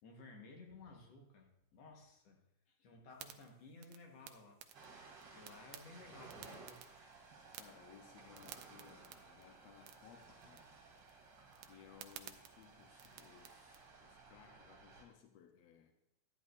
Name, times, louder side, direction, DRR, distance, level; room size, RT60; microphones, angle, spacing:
voice 1, 0.0-4.6 5.3-6.8, left 3 dB, 60° left, 2 dB, 2.1 m, -57 dB
sound 1, 3.1-13.8, right 11 dB, 80° right, 1.6 m, -58 dB
Ocean, 4.7-15.0, right 3 dB, 45° right, 2.7 m, -58 dB
voice 2, 7.6-10.7 11.6-15.9, left 8 dB, 80° left, 4 dB, 1.5 m, -61 dB
12.5 x 9.9 x 2.5 m, 0.79 s
omnidirectional pair, 3.8 m